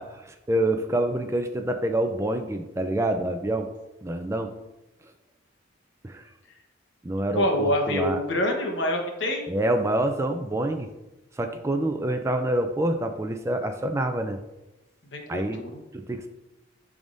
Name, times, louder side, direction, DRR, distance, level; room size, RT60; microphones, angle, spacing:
voice 1, 0.0-3.7 4.0-4.5 6.0-6.2 7.0-8.2 9.5-10.9 11.4-14.4 15.3-15.6 15.9-16.3, right 1 dB, 15° right, 6 dB, 0.4 m, -27 dB
voice 2, 7.3-9.4 15.1-15.8, left 1 dB, 70° left, 2 dB, 1.1 m, -26 dB
10.5 x 3.6 x 2.6 m, 0.99 s
head